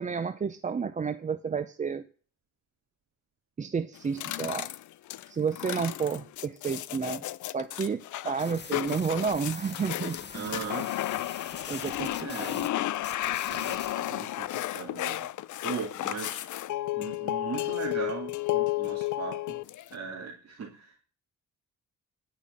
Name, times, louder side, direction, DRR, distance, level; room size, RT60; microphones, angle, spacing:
voice 1, 0.0-2.0 3.6-4.7 5.3-10.6 11.7-12.9 13.4-13.8, right 5 dB, 25° right, 11 dB, 0.5 m, -31 dB
sound 1, 3.9-19.9, left 15 dB, 65° left, 0.5 m, -33 dB
sound 2, 8.4-12.7 12.9-14.1, left 6 dB, 35° left, 1.0 m, -44 dB
voice 2, 10.3-10.9 12.2-12.6 13.5-15.3 15.6-16.5 16.9-19.6 19.9-20.9, right 5 dB, 50° right, -4 dB, 2.7 m, -38 dB
10.5 x 5.4 x 7.5 m, 0.41 s
cardioid pair, 140°, 32 cm